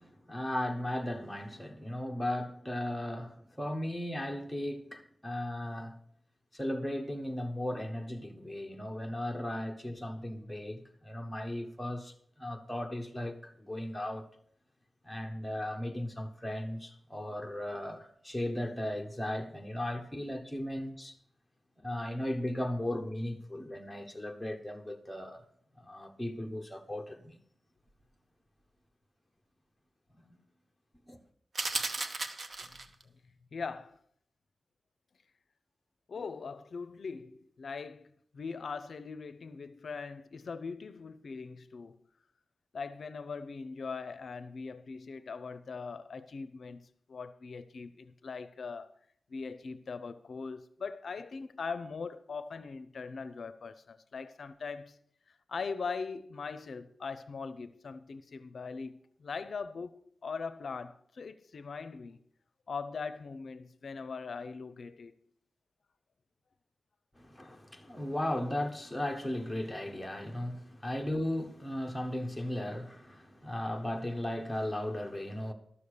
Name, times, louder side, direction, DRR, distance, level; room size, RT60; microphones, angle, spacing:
voice 1, 0.0-5.9 6.5-12.1 12.4-14.3 15.0-21.2 21.8-25.4 25.8-27.4 31.1-31.2 67.2-75.5, left 1 dB, 5° left, 1.2 m, -36 dB
sound 1, 31.5-33.0, right 3 dB, 55° right, 0.9 m, -35 dB
voice 2, 33.5-34.0 36.1-42.0 42.7-48.9 49.3-55.0 55.5-62.2 62.7-65.1, left 5 dB, 70° left, 0.5 m, -41 dB
12.5 x 6.9 x 6.6 m
wide cardioid pair, 120°, 0 cm